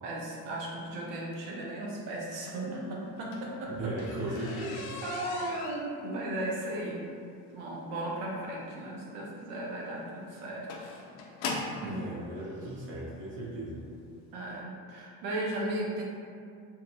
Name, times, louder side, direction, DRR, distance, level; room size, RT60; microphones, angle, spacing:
voice 1, 0.0-3.9 4.3-4.6 5.0-7.1 7.5-10.9 11.6-12.0 14.3-16.0, right 1 dB, 75° right, -3 dB, 0.7 m, -36 dB
sound 1, 3.0-11.9 12.8-12.9 13.5-13.7 14.0-14.1 14.4-14.5, left 3 dB, 75° left, 0.5 m, -40 dB
voice 2, 3.8-5.0 11.8-13.8, right 1 dB, 30° right, -7 dB, 0.6 m, -37 dB
2.7 x 2.2 x 2.6 m, 2.3 s
supercardioid pair, 75°, 42 cm